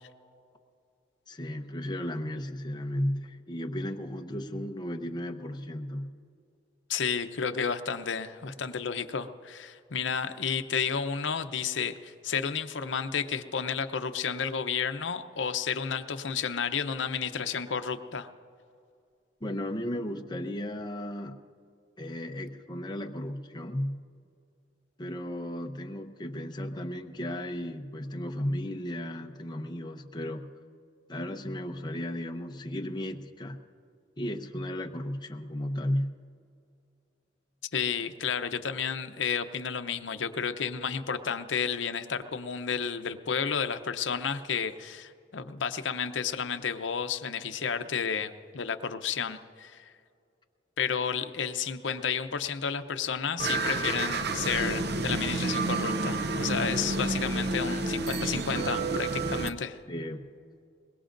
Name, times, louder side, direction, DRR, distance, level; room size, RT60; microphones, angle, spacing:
voice 1, 1.3-6.1 19.4-21.4 22.0-24.0 25.0-30.5 31.1-33.6 34.2-36.2 59.9-60.2, left 1 dB, 25° left, 4 dB, 0.7 m, -34 dB
voice 2, 6.9-18.3 37.7-49.9 50.8-59.8, left 6 dB, 75° left, 9 dB, 0.7 m, -31 dB
sound 1, 53.4-59.5, right 3 dB, 60° right, 0.7 m, -30 dB
23.0 x 21.0 x 2.6 m, 2.4 s
head